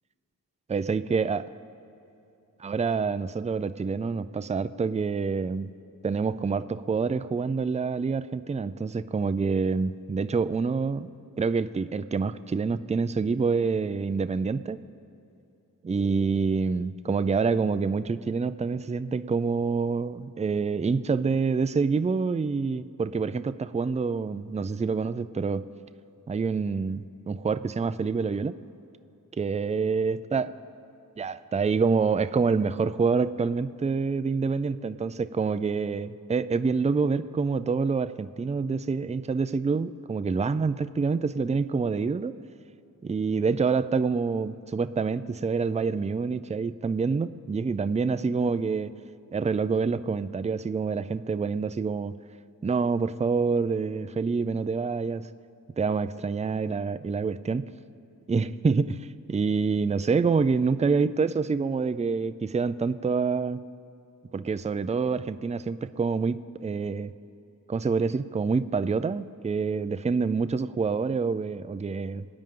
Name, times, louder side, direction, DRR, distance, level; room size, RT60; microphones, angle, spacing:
voice 1, 0.7-1.4 2.6-5.7 6.0-11.1 11.4-14.8 15.8-25.6 26.3-28.6 29.4-30.4 31.2-42.3 43.0-48.9 49.3-52.1 52.6-55.3 55.8-57.7 58.3-59.0 59.3-63.6 64.3-67.1 67.7-72.3, right 5 dB, 20° right, 12 dB, 0.4 m, -27 dB
26.5 x 9.0 x 3.8 m, 2.7 s
wide cardioid pair, 80°, 36 cm